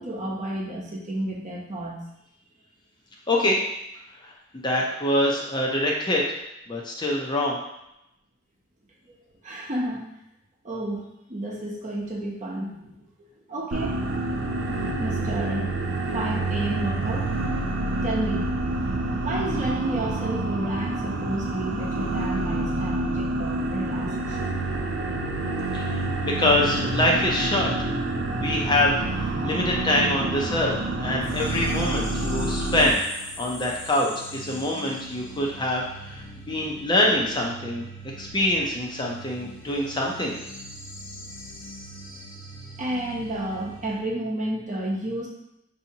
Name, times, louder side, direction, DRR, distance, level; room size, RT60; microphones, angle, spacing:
voice 1, 0.0-2.1 9.4-10.1 10.6-13.0 13.5-14.0 14.9-15.7 16.1-17.3 18.0-18.5 19.2-24.5 42.8-45.3, right 1 dB, 40° right, -3 dB, 0.8 m, -31 dB
voice 2, 3.3-3.6 4.6-6.2 6.7-7.6 25.7-27.7 28.4-30.7 31.0-33.0 33.4-35.8 36.1-36.2 36.5-37.8 38.2-40.4, left 1 dB, 25° left, -2 dB, 0.5 m, -24 dB
sound 1, 13.7-32.9, right 2 dB, 70° right, 0.5 m, -28 dB
sound 2, 31.2-44.0, equal, 80° left, 1.2 m, -41 dB
5.5 x 2.8 x 2.8 m, 0.85 s
head